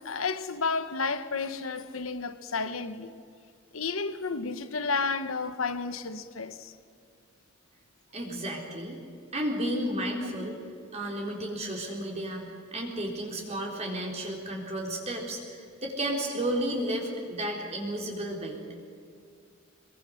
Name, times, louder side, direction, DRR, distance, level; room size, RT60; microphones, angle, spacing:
voice 1, 0.0-3.1 3.7-6.7, left 4 dB, 85° left, 1.2 m, -31 dB
voice 2, 8.1-9.0 9.3-10.6 10.9-12.4 12.7-18.6, right 1 dB, 30° right, 3.9 m, -32 dB
24.5 x 22.0 x 6.6 m
head